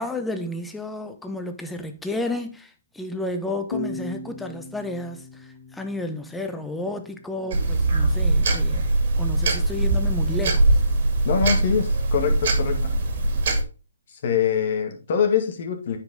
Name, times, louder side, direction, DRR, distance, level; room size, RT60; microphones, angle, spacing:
voice 1, 0.0-8.9 9.2-10.8, left 1 dB, 5° left, 0.8 m, -32 dB
sound 1, 3.7-7.1, left 3 dB, 65° left, 1.5 m, -36 dB
sound 2, 7.5-13.6, right 2 dB, 50° right, 2.2 m, -21 dB
voice 2, 11.2-13.0 14.1-16.0, left 7 dB, 50° left, 2.0 m, -24 dB
9.3 x 5.2 x 3.8 m
hypercardioid pair, 145°, 0 cm